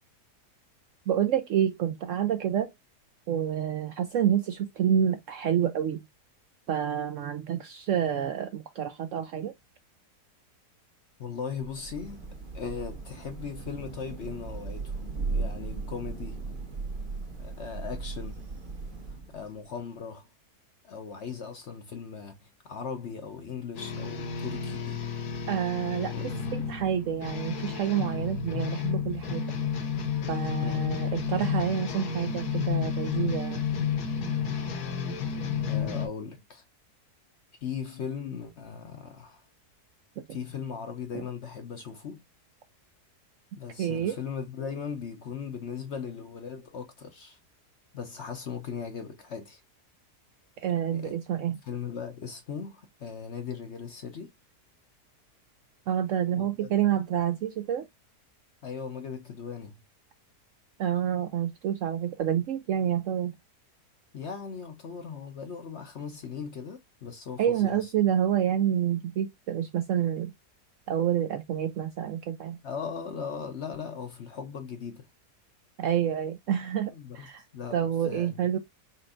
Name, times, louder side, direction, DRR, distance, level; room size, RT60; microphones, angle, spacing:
voice 1, 1.1-2.7 3.3-6.0 6.7-9.5 25.5-29.4 30.3-33.6 40.2-40.3 41.1-41.2 43.8-44.2 50.6-51.6 55.9-57.9 60.8-63.3 67.4-70.3 70.9-72.6 75.8-77.4 77.7-78.6, right 9 dB, 70° right, 0.7 m, -28 dB
voice 2, 11.2-16.5 17.4-18.5 19.3-20.3 20.8-25.0 26.1-26.3 30.6-30.9 35.7-36.6 37.6-39.4 40.3-42.2 43.6-47.4 47.9-49.6 50.9-51.2 51.6-54.3 56.3-56.7 58.6-59.8 64.1-67.9 72.6-75.1 76.9-77.3 77.5-77.8 78.1-78.4, left 6 dB, 55° left, 0.8 m, -38 dB
Thunder / Rain, 11.6-19.6, right 4 dB, 35° right, 1.1 m, -37 dB
sound 1, 23.8-36.1, left 7 dB, 75° left, 1.5 m, -31 dB
4.4 x 4.2 x 2.4 m
omnidirectional pair, 1.7 m